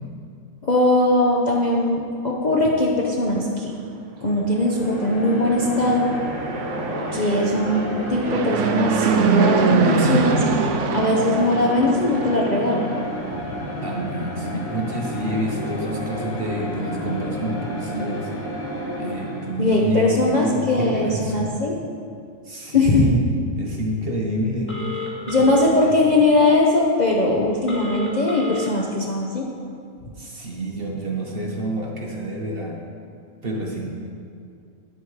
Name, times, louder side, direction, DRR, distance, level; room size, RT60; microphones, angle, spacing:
voice 1, 0.6-3.7 4.2-6.1 7.1-10.4 10.9-13.0 19.6-21.8 22.7-23.2 25.3-29.5, left 2 dB, 35° left, -3 dB, 0.8 m, -20 dB
sound 1, 4.4-19.8, equal, 85° left, 2.3 m, -31 dB
Fixed-wing aircraft airplane, 5.7-13.1, right 5 dB, 65° right, 0.8 m, -23 dB
voice 2, 13.8-18.3 19.0-21.5 22.5-23.2 23.5-24.7 25.6-26.1 30.2-32.8 33.4-33.9, equal, 40° right, -1 dB, 1.2 m, -28 dB
Telephone, 24.7-25.7 27.7-28.7, left 5 dB, 10° left, 1.4 m, -30 dB
9.5 x 8.3 x 4.8 m, 2.4 s
omnidirectional pair, 1.7 m